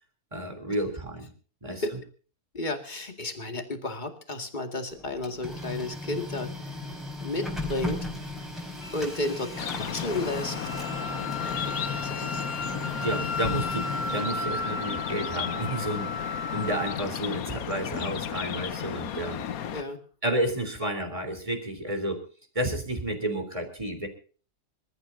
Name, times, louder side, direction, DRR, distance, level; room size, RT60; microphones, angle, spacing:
voice 1, 0.3-1.3 1.6-1.8 12.7-16.2 16.5-19.4 20.2-22.2 22.6-24.1, right 1 dB, 20° right, 6 dB, 3.7 m, -31 dB
voice 2, 2.5-6.5 7.2-8.0 8.9-10.6 11.4-12.4 19.7-20.0, left 2 dB, 30° left, 5 dB, 2.3 m, -32 dB
Printer, 4.9-14.7, left 2 dB, ahead, 4.6 m, -37 dB
Wind instrument woodwind instrument, 8.8-17.0, left 3 dB, 55° left, 1.5 m, -35 dB
sound 1, 9.6-19.8, left 9 dB, 70° left, 1.3 m, -34 dB
26.5 x 14.0 x 2.7 m, 0.39 s
omnidirectional pair, 1.6 m